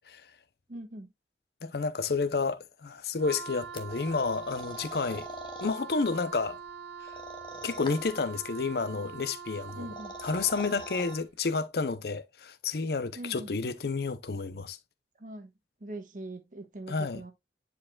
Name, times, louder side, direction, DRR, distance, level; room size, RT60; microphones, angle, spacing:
voice 1, 0.7-1.1 9.7-10.1 13.1-13.5 15.2-15.5 15.8-17.3, right 1 dB, 45° right, 1.3 m, -42 dB
voice 2, 1.6-5.3 5.6-6.6 7.6-9.9 10.2-14.8 16.9-17.2, left 4 dB, 60° left, 0.6 m, -30 dB
Wind instrument woodwind instrument, 3.2-11.3, right 6 dB, 70° right, 0.7 m, -44 dB
sound 1, 3.8-5.8 7.1-8.2 9.7-11.1, left 2 dB, 25° left, 0.9 m, -45 dB
9.7 x 4.7 x 2.3 m
head